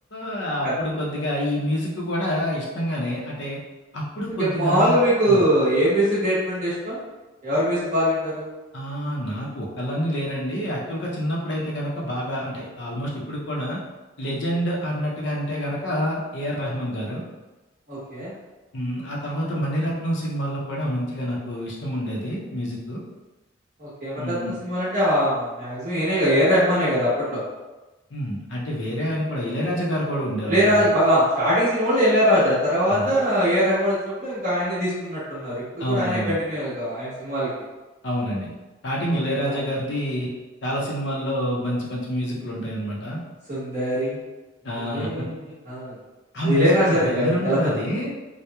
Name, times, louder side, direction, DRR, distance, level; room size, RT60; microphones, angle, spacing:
voice 1, 0.1-3.6 3.9-5.4 8.7-13.8 14.2-17.2 18.7-23.0 24.2-24.6 28.1-30.9 32.9-33.1 35.8-36.4 38.0-38.5 38.8-40.3 40.6-43.2 44.6-45.3 46.3-48.1, equal, 65° left, -4 dB, 0.6 m, -27 dB
voice 2, 4.4-7.0 7.4-8.5 17.9-18.3 23.8-27.4 30.5-37.5 39.2-39.6 43.5-44.2 44.7-45.9 46.4-47.6, equal, 40° right, -9 dB, 1.0 m, -22 dB
2.8 x 2.0 x 2.2 m, 1.1 s
head